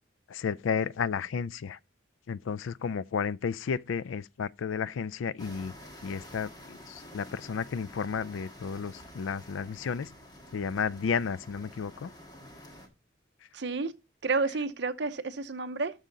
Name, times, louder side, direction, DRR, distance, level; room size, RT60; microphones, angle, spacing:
voice 1, 0.3-1.8 2.3-5.7 6.0-10.1 10.5-12.1, left 6 dB, 85° left, 0.4 m, -32 dB
sound 1, 5.4-12.9, left 1 dB, 20° left, 1.6 m, -49 dB
voice 2, 13.5-13.9 14.2-15.9, right 3 dB, 60° right, 0.7 m, -30 dB
13.0 x 4.9 x 3.9 m
head